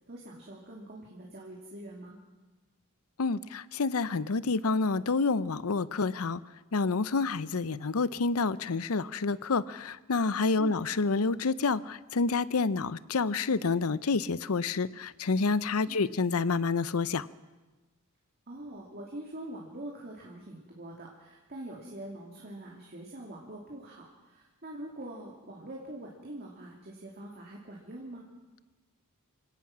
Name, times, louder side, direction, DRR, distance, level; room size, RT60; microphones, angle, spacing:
voice 1, 0.1-2.2 10.6-10.8 15.9-16.0 18.5-28.3, right 1 dB, 45° right, -1 dB, 2.7 m, -44 dB
voice 2, 3.2-6.4 6.7-17.3, left 4 dB, 75° left, 17 dB, 0.7 m, -28 dB
27.5 x 17.5 x 6.1 m, 1.2 s
head